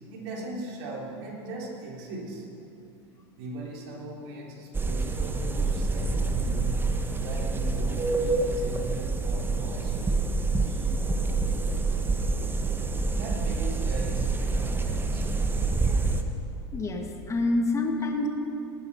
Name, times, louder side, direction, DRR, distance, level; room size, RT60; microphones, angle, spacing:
voice 1, 0.1-2.5 3.4-6.8 7.2-10.2 10.6-11.0 12.2-12.6 13.1-15.3, right 1 dB, 65° right, -2 dB, 3.7 m, -39 dB
sound 1, 4.7-16.2, right 3 dB, 15° right, 1.1 m, -27 dB
voice 2, 16.7-18.3, left 2 dB, 20° left, 2 dB, 2.1 m, -27 dB
19.0 x 9.3 x 5.7 m, 2.8 s
hypercardioid pair, 95°, 14 cm